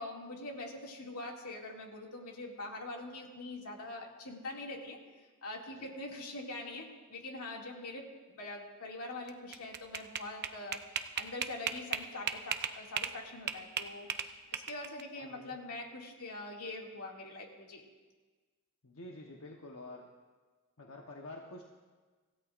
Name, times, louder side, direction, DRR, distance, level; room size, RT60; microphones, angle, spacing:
voice 1, 0.0-5.0 5.4-17.8, left 2 dB, 80° left, -1 dB, 2.4 m, -44 dB
sound 1, 9.3-13.2 13.5-15.0, right 8 dB, 50° right, 0.7 m, -35 dB
voice 2, 15.2-15.6 18.8-20.1 20.8-21.6, left 2 dB, 65° left, 0 dB, 1.1 m, -48 dB
25.5 x 15.5 x 2.5 m, 1.4 s
head